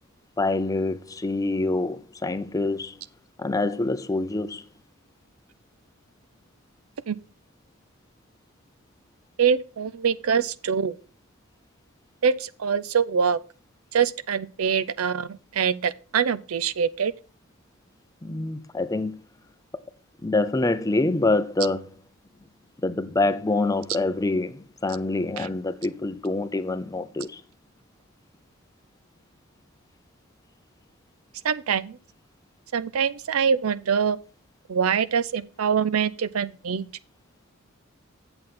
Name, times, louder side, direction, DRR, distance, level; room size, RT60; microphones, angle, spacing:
voice 1, 0.4-3.0 3.4-4.6 18.2-19.1 20.2-21.9 22.8-27.4, left 2 dB, 15° left, 0.5 m, -26 dB
voice 2, 9.4-11.0 12.2-13.4 13.9-15.3 15.5-17.1 25.4-25.5 31.4-32.0 32.7-34.2 34.7-36.9, right 7 dB, 85° right, 0.5 m, -24 dB
8.7 x 7.7 x 4.2 m
head